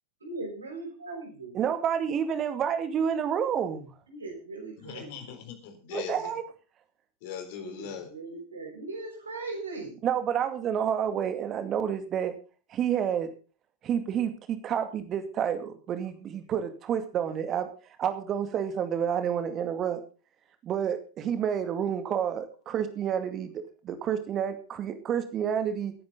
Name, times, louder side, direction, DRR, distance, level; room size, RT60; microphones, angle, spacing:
voice 1, 0.2-1.6 4.1-5.3 7.6-10.0, right 3 dB, 75° right, 2 dB, 5.7 m, -39 dB
voice 2, 1.5-3.9 5.9-6.4 10.0-12.3 12.7-13.3 13.8-17.7 18.0-20.0 20.6-25.9, right 8 dB, 30° right, 9 dB, 2.2 m, -29 dB
voice 3, 4.8-6.3 7.2-8.1, left 8 dB, 50° left, 6 dB, 4.0 m, -40 dB
19.0 x 10.5 x 3.9 m, 0.36 s
figure-of-eight pair, 90°, 0 cm